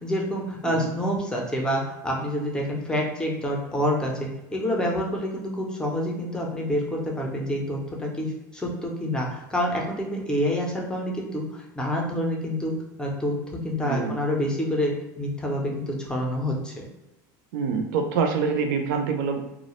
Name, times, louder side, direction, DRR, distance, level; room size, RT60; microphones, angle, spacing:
voice 1, 0.0-12.7 13.0-16.9, equal, 10° left, -1 dB, 0.4 m, -27 dB
voice 2, 13.8-14.2 17.5-19.4, right 5 dB, 75° right, 5 dB, 0.4 m, -26 dB
2.3 x 2.0 x 2.9 m, 0.95 s
supercardioid pair, 145°, 10 cm